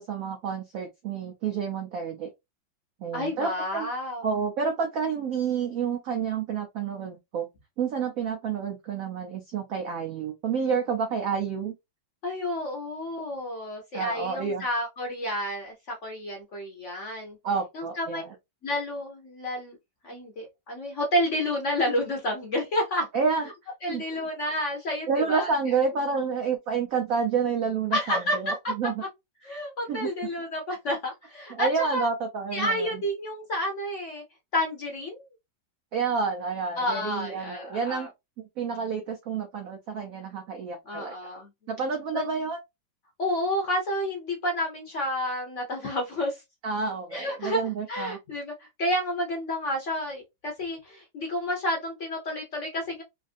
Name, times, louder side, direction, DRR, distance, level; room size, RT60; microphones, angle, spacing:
voice 1, 0.0-2.3 3.0-3.9 4.2-7.5 7.8-11.7 13.9-14.6 17.4-18.3 23.1-23.5 23.9-24.0 25.1-28.9 29.9-30.1 31.5-33.0 35.9-38.1 38.6-41.1 41.7-42.6 46.6-48.2, right 5 dB, 75° right, 0.8 m, -29 dB
voice 2, 3.1-4.3 12.2-17.4 17.7-18.2 18.6-19.8 20.0-23.1 23.8-25.5 27.9-28.7 29.4-32.1 32.5-34.2 34.5-35.2 36.8-38.1 40.9-41.5 42.1-42.3 43.2-46.4 47.1-48.5 48.8-53.0, left 1 dB, 55° left, 0.9 m, -30 dB
3.3 x 2.4 x 2.5 m
omnidirectional pair, 2.1 m